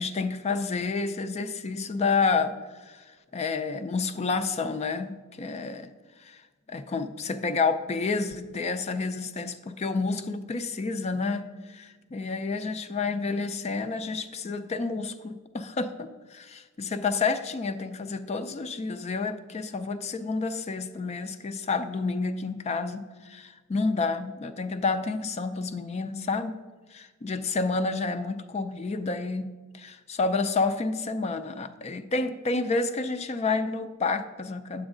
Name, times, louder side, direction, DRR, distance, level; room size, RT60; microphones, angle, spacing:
voice 1, 0.0-2.5 2.8-3.0 3.3-5.9 6.2-6.4 6.7-26.6 26.9-29.4 29.7-34.9, left 4 dB, 30° left, 9 dB, 0.4 m, -29 dB
9.6 x 7.0 x 3.8 m, 1.3 s
head